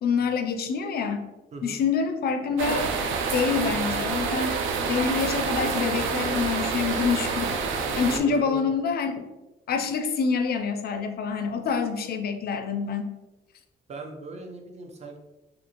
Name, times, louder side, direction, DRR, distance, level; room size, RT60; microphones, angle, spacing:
voice 1, 0.0-1.2 1.6-2.9 3.3-4.6 4.9-7.6 8.0-9.1 9.7-13.1, left 5 dB, 50° left, 7 dB, 0.4 m, -26 dB
sound 1, 2.6-8.2, right 4 dB, 85° right, 0.4 m, -27 dB
voice 2, 8.1-8.6 13.9-15.2, right 3 dB, 35° right, 3 dB, 0.5 m, -40 dB
2.5 x 2.5 x 2.8 m, 1.0 s
cardioid pair, 90°, 20 cm